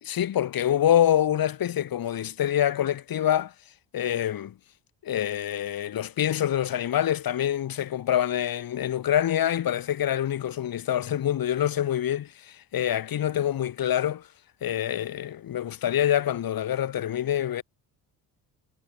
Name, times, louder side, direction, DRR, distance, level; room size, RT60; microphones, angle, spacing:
voice 1, 0.1-3.5 3.9-4.5 5.0-14.3 14.6-17.6, left 11 dB, 60° left, 3.1 m, -26 dB
cardioid pair, 90°, 39 cm